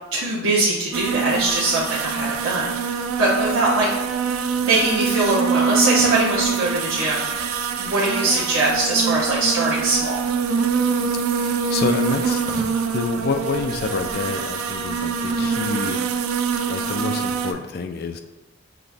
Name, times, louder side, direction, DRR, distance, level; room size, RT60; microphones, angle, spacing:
voice 1, 0.1-3.9 4.6-10.2, right 2 dB, 75° right, -6 dB, 0.8 m, -22 dB
sound 1, 0.9-17.5, right 5 dB, 90° right, 0.4 m, -24 dB
voice 2, 11.3-12.4 12.9-16.1 16.7-18.2, left 4 dB, 45° left, 7 dB, 0.3 m, -28 dB
5.8 x 2.5 x 3.4 m, 1.0 s
head